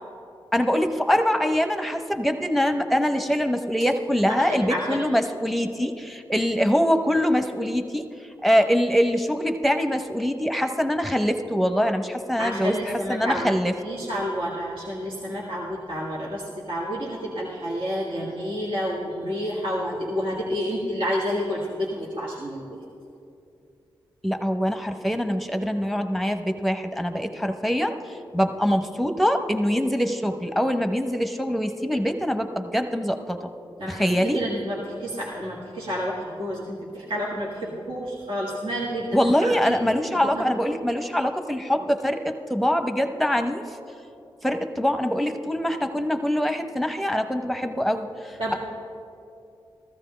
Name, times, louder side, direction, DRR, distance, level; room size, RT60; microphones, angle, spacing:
voice 1, 0.5-8.0 8.4-13.7 24.2-33.5 33.9-34.4 39.1-43.6 44.4-48.5, equal, ahead, 7 dB, 0.9 m, -24 dB
voice 2, 4.3-5.0 12.4-22.8 33.8-39.7 40.3-40.4 48.4-48.5, equal, 70° right, -6 dB, 1.7 m, -30 dB
14.5 x 13.5 x 3.3 m, 2.6 s
cardioid pair, 45°, 9 cm